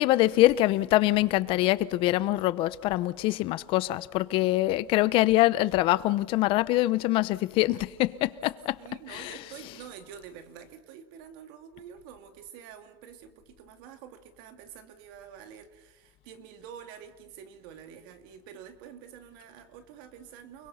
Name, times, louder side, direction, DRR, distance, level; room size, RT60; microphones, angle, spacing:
voice 1, 0.0-8.8 9.1-9.3, left 17 dB, 50° left, 0.8 m, -24 dB
voice 2, 8.8-20.7, right 8 dB, 70° right, 2.6 m, -47 dB
29.5 x 21.5 x 5.8 m
supercardioid pair, 150°, 12 cm